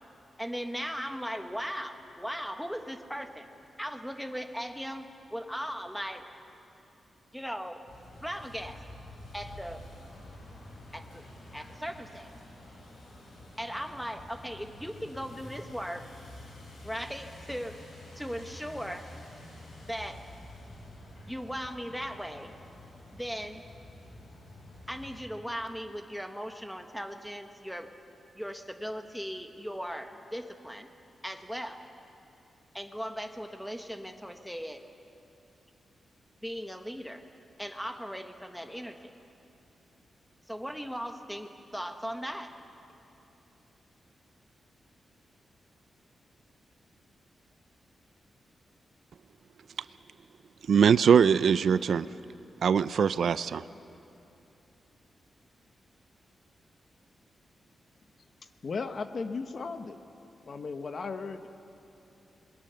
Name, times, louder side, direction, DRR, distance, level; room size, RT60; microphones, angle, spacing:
voice 1, 0.4-3.5 3.8-6.2 7.3-7.8 8.2-8.8 9.3-9.8 10.9-11.2 11.5-12.3 13.6-16.0 16.8-17.8 18.1-19.0 19.8-20.2 21.2-22.5 23.1-23.6 24.9-27.9 28.3-30.9 31.2-31.8 32.7-34.8 36.4-37.2 37.6-39.1 40.5-42.5, equal, ahead, 6 dB, 1.2 m, -38 dB
sound 1, 7.9-25.2, left 1 dB, 85° left, 7.1 m, -49 dB
voice 2, 50.7-52.1 52.6-53.7, right 7 dB, 65° right, 15 dB, 0.4 m, -22 dB
voice 3, 58.6-60.0 60.4-61.5, left 4 dB, 45° left, 9 dB, 1.0 m, -36 dB
26.5 x 21.5 x 6.9 m, 2.9 s
wide cardioid pair, 155°, 0 cm